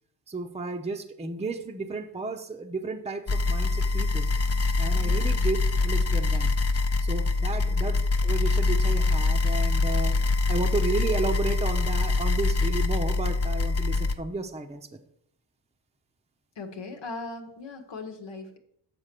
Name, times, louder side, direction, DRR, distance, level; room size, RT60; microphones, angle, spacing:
voice 1, 0.3-4.3 4.8-6.5 7.0-10.2 10.5-14.9, right 3 dB, 15° right, 5 dB, 0.7 m, -33 dB
sound 1, 3.3-14.1, left 3 dB, 35° left, 0.6 m, -24 dB
voice 2, 5.0-5.3 7.6-7.7 16.6-18.6, left 3 dB, 75° left, 4 dB, 1.2 m, -39 dB
7.6 x 4.4 x 6.6 m, 0.73 s
cardioid pair, 80°, 45 cm